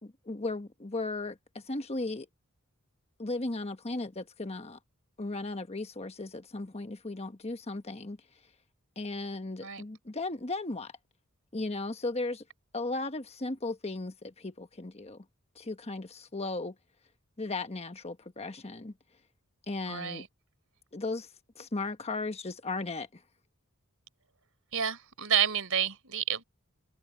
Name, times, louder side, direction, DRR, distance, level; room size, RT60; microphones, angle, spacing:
voice 1, 0.0-2.3 3.2-4.8 5.2-8.2 9.0-10.9 11.5-12.4 12.7-15.2 15.5-16.8 17.4-18.9 19.7-20.2 20.9-23.2, left 2 dB, 30° left, 1.2 m, -36 dB
voice 2, 19.9-20.3 24.7-26.4, right 8 dB, 70° right, 4.5 m, -29 dB
head